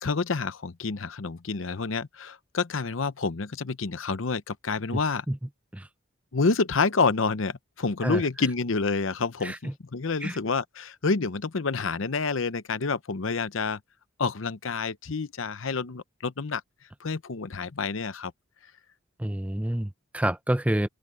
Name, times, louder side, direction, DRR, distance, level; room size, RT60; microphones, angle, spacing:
voice 1, 0.0-5.2 6.3-13.8 14.2-16.6 17.0-18.3, left 4 dB, 75° left, 0.8 m, -28 dB
voice 2, 9.4-9.7 10.2-10.4 19.2-20.9, right 1 dB, 5° right, 0.5 m, -28 dB
open air
head